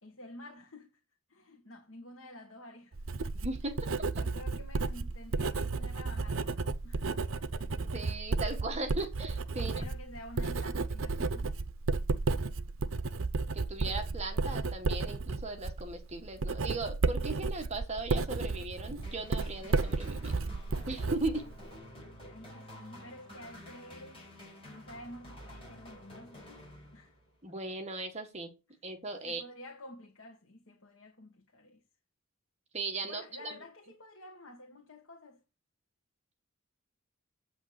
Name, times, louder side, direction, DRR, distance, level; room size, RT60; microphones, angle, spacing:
voice 1, 0.0-0.9 1.3-3.0 4.2-7.1 9.6-11.5 22.2-24.3 24.7-26.5 26.9-27.1 29.2-31.8 33.0-35.4, left 1 dB, 70° left, 1.7 m, -50 dB
Writing, 2.9-21.8, right 3 dB, 75° right, 0.7 m, -33 dB
voice 2, 3.4-4.1 7.8-9.8 13.5-20.3 20.9-21.5 27.4-28.5 28.8-29.4 32.7-33.6, right 2 dB, 30° right, 1.8 m, -38 dB
sound 1, 19.0-27.3, left 1 dB, 25° left, 5.2 m, -50 dB
8.4 x 6.0 x 6.7 m
head